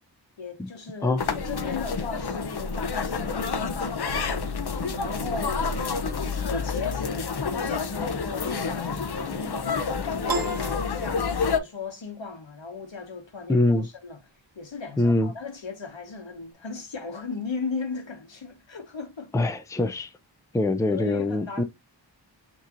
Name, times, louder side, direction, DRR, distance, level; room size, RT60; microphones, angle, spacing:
voice 1, 0.4-4.5 4.9-5.7 6.4-14.2 14.5-19.3 20.9-21.6, left 4 dB, 80° left, 1.2 m, -36 dB
sound 1, 1.2-11.6, left 5 dB, 60° left, 0.7 m, -29 dB
Piano, 10.3-11.8, right 6 dB, 55° right, 0.5 m, -33 dB
voice 2, 13.5-13.9 15.0-15.3 19.3-20.1 20.5-21.6, left 2 dB, 5° left, 0.5 m, -23 dB
5.7 x 3.0 x 2.5 m
wide cardioid pair, 45°, 45 cm